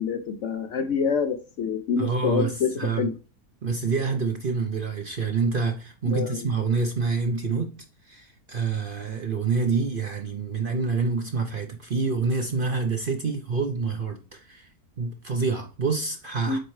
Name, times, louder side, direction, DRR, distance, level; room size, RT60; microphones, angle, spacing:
voice 1, 0.0-3.1 6.1-6.5 16.5-16.6, left 6 dB, 65° left, 0.8 m, -27 dB
voice 2, 2.0-3.1 3.6-7.7 8.1-14.7 15.0-16.6, right 4 dB, 45° right, 0.7 m, -27 dB
7.9 x 4.4 x 3.2 m
omnidirectional pair, 1.7 m